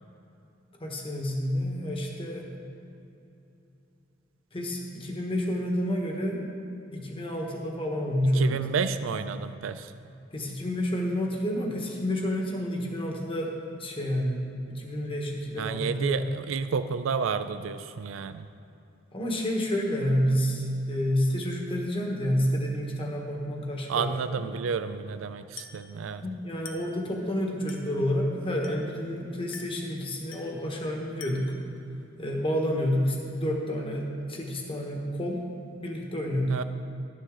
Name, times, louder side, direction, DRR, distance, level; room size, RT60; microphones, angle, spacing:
voice 1, 0.8-2.5 4.5-6.4 6.9-8.5 10.3-16.2 19.1-24.1 26.2-31.5 32.2-35.5 35.8-36.5, equal, 30° left, 0 dB, 1.4 m, -29 dB
voice 2, 8.2-9.9 15.6-18.5 23.9-26.2 36.5-36.6, right 6 dB, 90° right, 11 dB, 0.4 m, -31 dB
Glass, 25.6-25.9 26.7-27.0 27.7-28.0 28.6-29.0 29.5-29.9 30.3-30.6 31.2-31.6, left 5 dB, 80° left, 1.0 m, -46 dB
12.5 x 10.0 x 3.8 m, 2.8 s
head